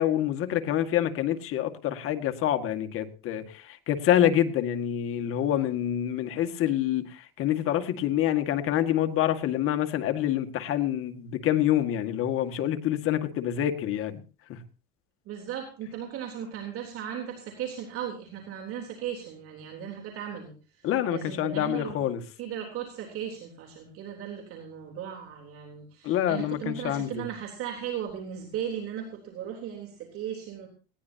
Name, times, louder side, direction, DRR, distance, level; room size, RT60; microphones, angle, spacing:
voice 1, 0.0-14.2 14.5-14.6 20.8-22.2 26.0-27.3, left 11 dB, 50° left, 7 dB, 2.0 m, -27 dB
voice 2, 15.3-22.0 22.4-30.7, right 9 dB, 50° right, 1 dB, 3.7 m, -37 dB
20.0 x 17.5 x 2.9 m, 0.36 s
supercardioid pair, 130°, 29 cm